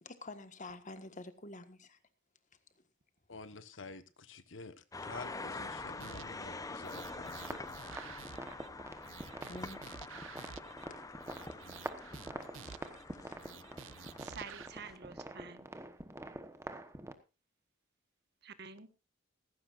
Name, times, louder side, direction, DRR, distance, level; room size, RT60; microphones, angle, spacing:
voice 1, 0.0-2.0 9.5-9.8 10.9-11.0 12.1-13.5 14.0-14.2, left 2 dB, 40° left, 10 dB, 1.5 m, -50 dB
voice 2, 3.3-7.6 7.9-8.2, left 3 dB, 75° left, 12 dB, 1.2 m, -49 dB
sound 1, 4.9-15.0, left 3 dB, 20° left, 0.7 m, -46 dB
sound 2, 6.0-6.5 6.8-8.7 9.0-10.9 11.2-13.0 13.4-14.7, right 8 dB, 85° right, 0.6 m, -51 dB
sound 3, 7.3-17.1, right 1 dB, 15° right, 1.1 m, -47 dB
voice 3, 14.2-15.7 18.4-18.9, right 5 dB, 60° right, 11 dB, 1.4 m, -48 dB
17.0 x 15.5 x 2.5 m, 0.29 s
head